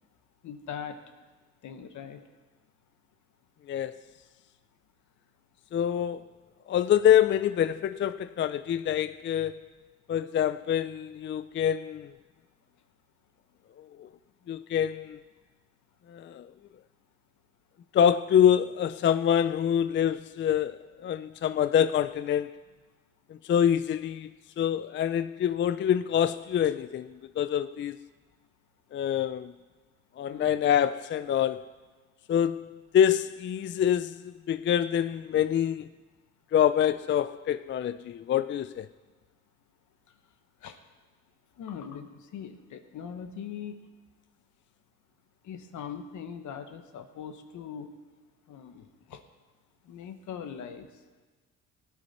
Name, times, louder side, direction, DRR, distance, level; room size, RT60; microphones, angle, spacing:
voice 1, 0.4-1.0 1.6-2.2 11.3-11.4 30.3-30.5 40.1-40.3 40.6-40.8 41.5-43.9 45.4-47.9 48.5-49.2 49.8-51.0, left 7 dB, 75° left, 1.2 m, -41 dB
voice 2, 3.7-4.0 5.7-6.2 6.7-9.6 10.1-12.1 14.0-14.1 14.5-15.2 16.1-16.5 17.9-22.5 23.4-24.3 24.6-28.0 28.9-29.5 30.2-31.7 32.3-35.9 36.5-38.9, left 9 dB, 40° left, 0.4 m, -26 dB
18.5 x 9.8 x 4.3 m
cardioid pair, 90°, 30 cm